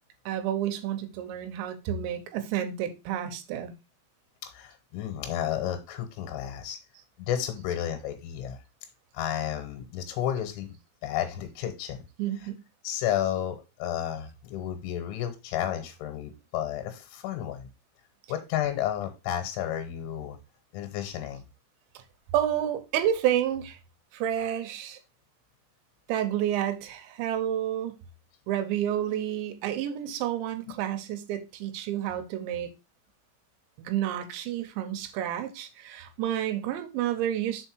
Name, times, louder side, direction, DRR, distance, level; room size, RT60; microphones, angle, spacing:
voice 1, 0.3-3.7 12.2-12.6 22.3-23.8 24.1-25.0 26.1-27.9 28.5-32.7 33.8-37.7, right 11 dB, 80° right, 3.1 m, -30 dB
voice 2, 4.4-6.8 7.2-8.6 9.1-10.8 11.0-12.0 12.4-12.5 12.8-17.7 18.3-20.4 20.7-21.4 30.6-30.7, left 10 dB, 85° left, 3.4 m, -32 dB
6.4 x 4.5 x 4.5 m
omnidirectional pair, 5.4 m